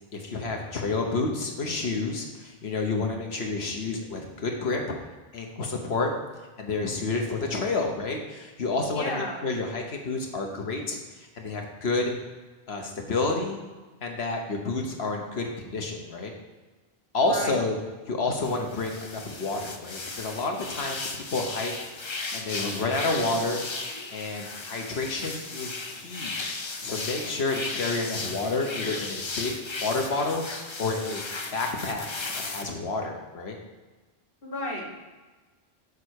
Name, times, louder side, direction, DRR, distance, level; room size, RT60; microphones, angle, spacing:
voice 1, 0.1-4.8 5.3-6.1 6.6-12.1 12.7-13.6 14.0-16.3 17.1-17.8 18.1-21.7 22.3-23.6 24.1-26.4 26.8-29.5 29.8-31.2 31.5-32.1 32.3-33.6, left 3 dB, 75° left, 2 dB, 1.4 m, -29 dB
voice 2, 8.9-9.4 17.3-17.6 34.4-34.9, left 1 dB, 60° left, -1 dB, 1.6 m, -32 dB
sound 1, 18.4-32.6, left 3 dB, 30° left, 0.6 m, -36 dB
7.3 x 4.8 x 6.4 m, 1.3 s
omnidirectional pair, 1.1 m